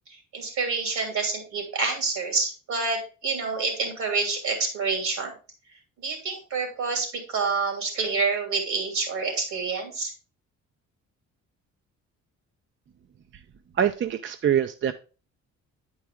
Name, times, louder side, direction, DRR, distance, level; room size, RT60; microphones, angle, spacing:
voice 1, 0.1-5.3 6.0-10.1, right 4 dB, 70° right, 3 dB, 2.9 m, -28 dB
voice 2, 13.7-14.9, right 9 dB, 40° right, 9 dB, 0.5 m, -24 dB
9.1 x 4.7 x 3.6 m, 0.35 s
cardioid pair, 90°, 30 cm